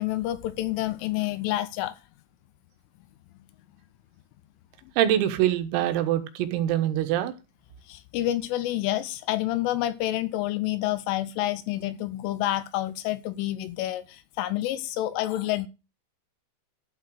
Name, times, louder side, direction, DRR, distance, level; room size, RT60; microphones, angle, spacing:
voice 1, 0.0-2.0 7.9-15.7, left 14 dB, 80° left, 3.1 m, -28 dB
voice 2, 5.0-7.3, right 11 dB, 85° right, 4.0 m, -24 dB
12.0 x 6.0 x 6.3 m
omnidirectional pair, 6.0 m